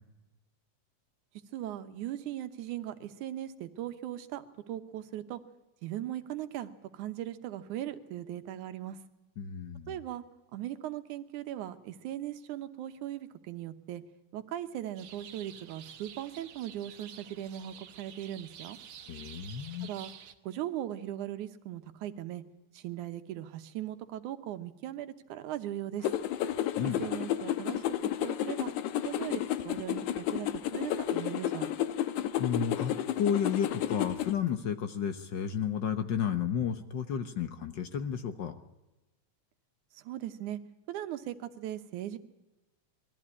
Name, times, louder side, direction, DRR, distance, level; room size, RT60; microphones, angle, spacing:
voice 1, 1.5-5.4 5.8-9.0 9.9-10.2 10.5-14.0 14.3-18.8 19.8-20.1 20.4-22.4 22.7-26.1 27.0-27.9 28.2-28.7 29.0-30.5 30.7-31.7 39.9-40.6 40.9-42.2, right 12 dB, 85° right, 9 dB, 2.5 m, -39 dB
voice 2, 9.4-10.0 19.1-19.9 26.8-27.0 32.4-38.5, left 8 dB, 65° left, 8 dB, 1.1 m, -32 dB
sound 1, 15.0-20.3, right 9 dB, 60° right, 1.7 m, -50 dB
sound 2, 26.0-34.3, left 11 dB, 85° left, 2.3 m, -32 dB
21.5 x 14.5 x 9.7 m, 1.0 s
omnidirectional pair, 3.4 m